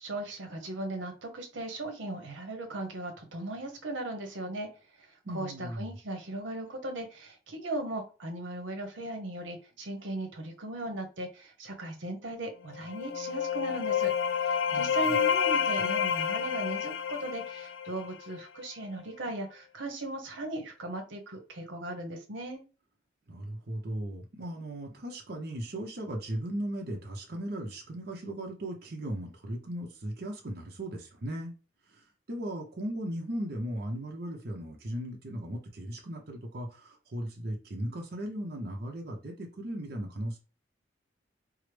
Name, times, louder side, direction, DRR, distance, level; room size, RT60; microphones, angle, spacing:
voice 1, 0.0-4.7 5.0-14.1 14.4-22.6, right 1 dB, 85° right, 0.9 m, -37 dB
voice 2, 5.2-6.0 14.7-15.1 23.3-31.5 31.9-40.4, right 1 dB, 55° right, 0.7 m, -37 dB
sound 1, 12.7-18.4, left 7 dB, 75° left, 0.4 m, -29 dB
4.7 x 2.0 x 3.2 m
head